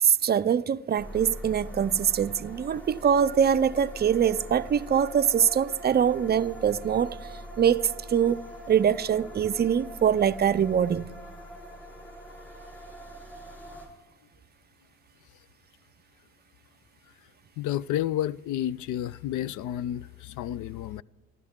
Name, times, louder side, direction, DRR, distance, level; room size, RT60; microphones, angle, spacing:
voice 1, 0.0-7.2 7.6-8.4 8.7-11.1, right 8 dB, 35° right, 0.5 m, -23 dB
sound 1, 1.0-13.9, right 1 dB, 5° left, 4.3 m, -43 dB
voice 2, 17.6-21.0, left 12 dB, 80° left, 0.5 m, -31 dB
28.5 x 12.0 x 3.7 m
cardioid pair, 90°, 30 cm